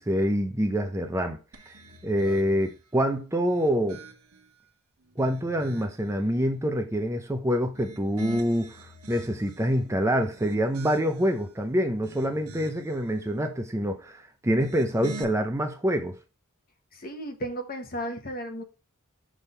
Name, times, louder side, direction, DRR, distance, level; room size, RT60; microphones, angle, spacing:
voice 1, 0.0-1.4 2.0-4.0 5.2-8.8 9.1-16.2, equal, 15° right, 0.6 m, -26 dB
sound 1, 1.5-2.8 3.4-4.5 5.0-6.1 7.6-9.7 10.2-11.4 11.9-13.0 14.5-15.2, right 3 dB, 80° right, 1.1 m, -45 dB
voice 2, 16.9-18.6, right 1 dB, 40° left, 1.2 m, -34 dB
6.3 x 3.6 x 5.5 m
head